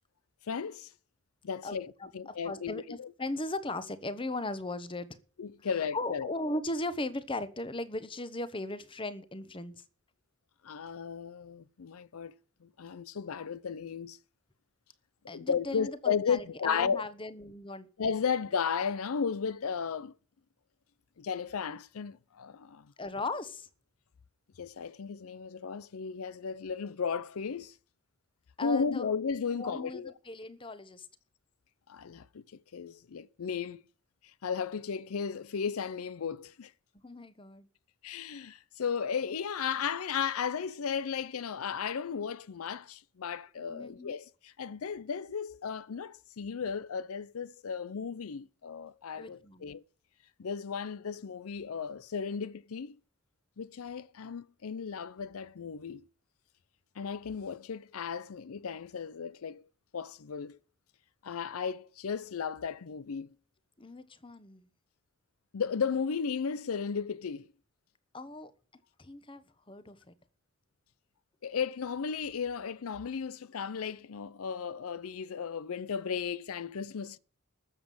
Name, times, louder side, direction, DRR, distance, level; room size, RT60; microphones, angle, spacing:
voice 1, 0.4-0.9 1.4-3.1 5.4-6.3 10.6-12.3 12.6-14.2 15.2-17.0 18.0-20.1 21.2-22.9 24.6-27.8 28.6-30.1 31.9-32.4 32.7-33.8 34.2-36.7 38.0-49.8 50.4-53.0 53.6-56.1 57.0-59.7 59.9-60.6 61.2-63.3 65.5-67.5 71.4-77.2, left 6 dB, 85° left, 0.5 m, -35 dB
voice 2, 2.0-5.1 5.9-9.8 15.3-17.9 23.0-23.7 28.6-29.1 29.5-31.1 37.0-37.7 43.7-44.1 49.2-49.7 63.8-64.7 68.1-68.5 69.0-70.1, left 2 dB, 25° left, 1.0 m, -38 dB
14.0 x 7.3 x 7.7 m
head